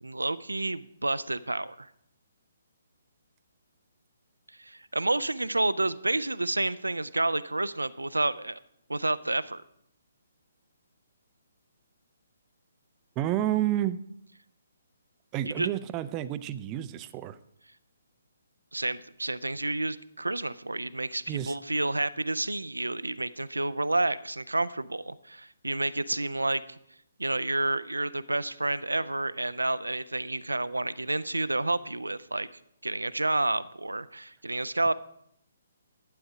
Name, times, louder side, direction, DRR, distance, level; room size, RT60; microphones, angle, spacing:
voice 1, 0.0-1.9 4.6-8.6 8.9-9.6 15.5-15.7 18.7-26.8 27.2-32.5 32.8-34.9, right 2 dB, 75° right, 16 dB, 0.5 m, -30 dB
voice 2, 13.2-14.0 15.3-17.4 21.3-21.5, right 13 dB, 20° right, 14 dB, 0.4 m, -30 dB
11.5 x 8.9 x 4.8 m, 0.74 s
figure-of-eight pair, 135°, 0 cm